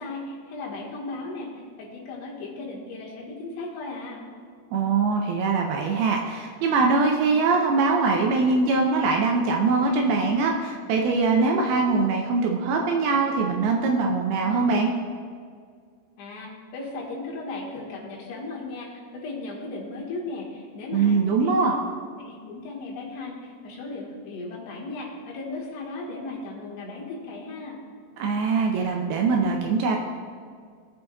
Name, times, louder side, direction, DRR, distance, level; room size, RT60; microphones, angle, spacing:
voice 1, 0.0-4.2 16.2-21.8 22.2-27.8, left 3 dB, 75° left, -3 dB, 3.3 m, -36 dB
voice 2, 4.7-14.9 20.9-21.7 28.2-30.0, right 4 dB, 80° right, 1 dB, 2.3 m, -22 dB
17.5 x 6.8 x 2.3 m, 2.1 s
omnidirectional pair, 4.9 m